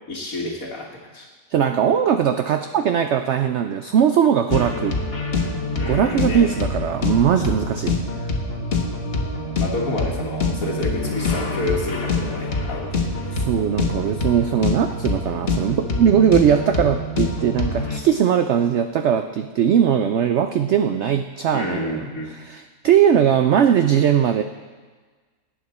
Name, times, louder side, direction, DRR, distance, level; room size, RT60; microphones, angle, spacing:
voice 1, 0.1-1.3 5.8-6.5 9.6-13.0 21.5-22.4, left 2 dB, 60° left, -4 dB, 1.9 m, -29 dB
voice 2, 1.5-4.9 5.9-8.0 13.3-22.1 22.4-24.4, right 8 dB, 70° right, 8 dB, 0.6 m, -19 dB
sound 1, 4.5-18.0, left 3 dB, 40° left, 1.4 m, -25 dB
18.5 x 8.9 x 4.2 m, 1.4 s
omnidirectional pair, 1.7 m